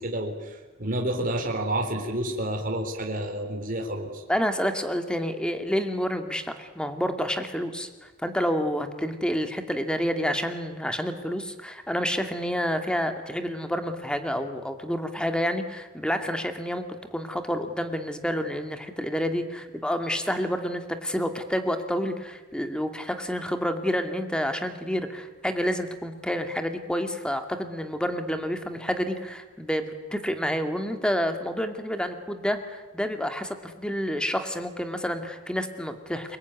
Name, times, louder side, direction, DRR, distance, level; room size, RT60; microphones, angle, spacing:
voice 1, 0.0-4.2, right 1 dB, 45° right, 2 dB, 4.1 m, -29 dB
voice 2, 4.3-36.4, equal, 5° left, 7 dB, 2.3 m, -29 dB
29.5 x 21.0 x 9.6 m, 1.2 s
head